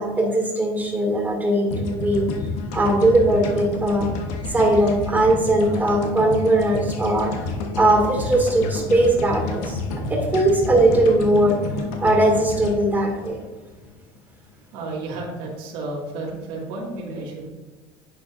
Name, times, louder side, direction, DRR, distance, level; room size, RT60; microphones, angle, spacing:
voice 1, 0.0-2.3 2.7-4.1 4.5-7.3 7.7-11.6 12.0-13.4, right 1 dB, 15° right, -1 dB, 2.3 m, -19 dB
sound 1, 1.7-13.9, left 3 dB, 75° left, 1.2 m, -30 dB
voice 2, 14.7-17.5, right 2 dB, 85° right, -3 dB, 2.2 m, -32 dB
9.8 x 7.0 x 2.6 m, 1.2 s
cardioid pair, 115°, 12 cm